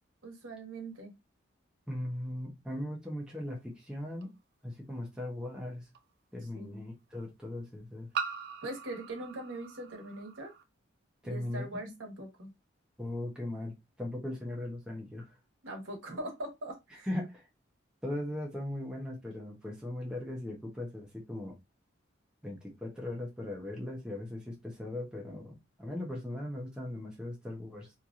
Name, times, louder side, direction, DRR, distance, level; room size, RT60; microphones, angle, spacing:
voice 1, 0.2-1.1 6.6-6.8 8.6-10.5 11.2-12.5 15.6-17.1, right 1 dB, 80° right, 1.1 m, -41 dB
voice 2, 1.9-4.3 4.6-5.9 6.3-8.1 11.2-11.8 13.0-15.3 17.1-17.5 18.0-21.5 22.4-27.9, left 1 dB, 5° right, 0.6 m, -38 dB
sound 1, 4.2-4.3 5.9-6.0 8.1-10.6, right 6 dB, 50° right, 0.3 m, -40 dB
2.8 x 2.5 x 2.4 m
head